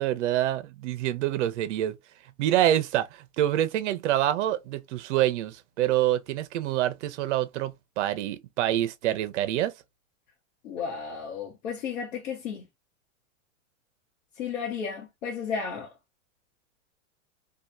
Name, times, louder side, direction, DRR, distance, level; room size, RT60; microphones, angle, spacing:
voice 1, 0.0-2.0 2.4-9.7, right 12 dB, 65° right, 0.6 m, -26 dB
voice 2, 10.6-12.6 14.4-15.9, left 6 dB, 80° left, 1.1 m, -33 dB
2.8 x 2.3 x 2.2 m
supercardioid pair, 160°, 39 cm